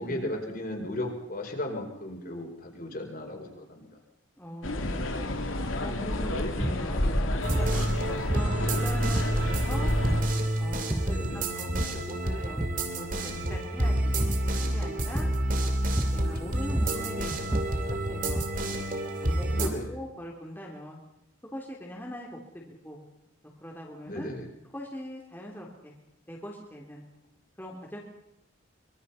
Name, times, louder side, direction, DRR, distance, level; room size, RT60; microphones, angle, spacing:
voice 1, 0.0-3.9 11.1-11.4 16.4-16.5 19.5-19.9 24.1-24.5, left 1 dB, 45° left, 2 dB, 4.6 m, -35 dB
voice 2, 4.4-5.5 5.8-7.7 8.1-10.0 10.6-11.7 12.1-12.7 12.9-14.1 14.6-15.3 16.1-18.5 19.2-21.0 21.5-23.0 23.6-24.3 24.7-25.9 26.3-27.0 27.6-28.0, equal, 10° left, -2 dB, 3.1 m, -41 dB
sound 1, 4.6-10.2, left 1 dB, 85° left, 2.6 m, -30 dB
sound 2, 6.6-6.9 7.5-7.8 8.3-8.8 9.1-9.6 10.0-10.3 10.7-11.3 11.7-12.1 12.4-12.9 13.3-13.7 14.2-14.5 15.2-15.5 16.0-16.3 16.6-18.7, right 1 dB, 15° right, 0.8 m, -31 dB
sound 3, 7.4-19.7, right 1 dB, 40° right, 2.8 m, -29 dB
24.5 x 23.0 x 5.7 m, 0.80 s
head